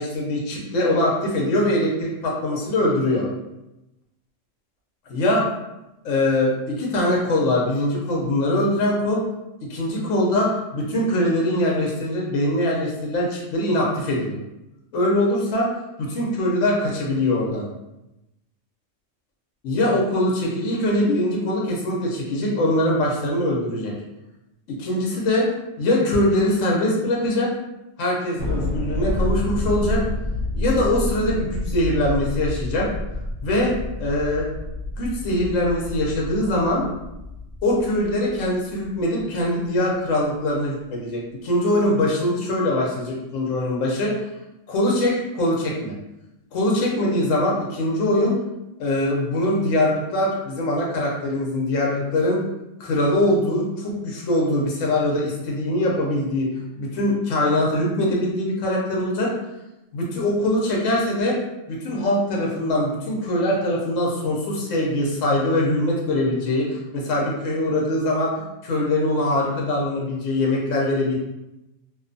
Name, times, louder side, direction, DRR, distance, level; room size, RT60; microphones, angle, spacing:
voice 1, 0.0-3.3 5.1-5.4 6.0-9.2 9.7-14.4 14.9-15.7 16.0-17.7 19.6-23.9 24.8-25.5 25.8-27.5 28.0-30.0 30.5-32.9 33.4-34.5 35.0-36.8 37.6-44.1 44.7-45.9 46.5-48.4 48.8-52.4 52.8-56.5 56.8-59.3 59.9-61.4 61.7-71.2, left 1 dB, 80° left, -3 dB, 1.0 m, -22 dB
Thunder, 28.4-39.0, left 1 dB, 40° right, 1.1 m, -29 dB
2.6 x 2.2 x 2.5 m, 0.94 s
omnidirectional pair, 1.3 m